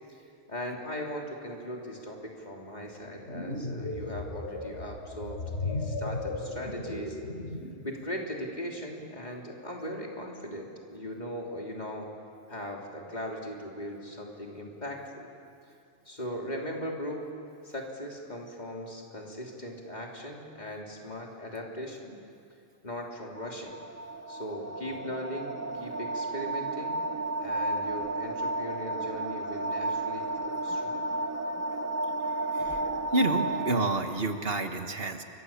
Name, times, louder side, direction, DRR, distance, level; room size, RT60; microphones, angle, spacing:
voice 1, 0.1-7.2 7.8-12.1 12.5-15.3 16.0-17.2 17.6-22.2 22.8-23.8 24.3-27.0 27.4-31.2, equal, 40° left, -1 dB, 3.4 m, -39 dB
sound 1, 3.1-7.9, left 2 dB, 70° left, 3.5 m, -35 dB
sound 2, 23.4-34.0, right 2 dB, 20° right, 0.5 m, -32 dB
voice 2, 33.1-35.2, right 2 dB, 60° right, 6 dB, 1.6 m, -29 dB
29.0 x 24.0 x 7.3 m, 2.5 s
omnidirectional pair, 1.2 m